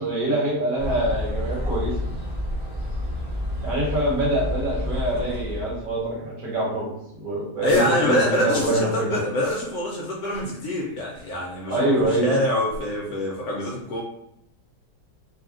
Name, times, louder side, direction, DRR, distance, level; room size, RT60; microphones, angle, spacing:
voice 1, 0.0-1.9 3.6-9.2 11.7-12.3, right 1 dB, 60° right, -6 dB, 1.4 m, -25 dB
sound 1, 0.8-6.1, left 1 dB, 35° right, 0.7 m, -29 dB
voice 2, 7.6-14.0, left 1 dB, 70° left, -4 dB, 1.0 m, -25 dB
sound 2, 7.6-8.0 8.5-8.8 9.4-9.7 10.2-10.5 11.1-11.3 12.0-12.1 12.7-12.9, right 1 dB, 85° right, 1.6 m, -41 dB
3.3 x 2.3 x 2.4 m, 0.79 s
omnidirectional pair, 1.9 m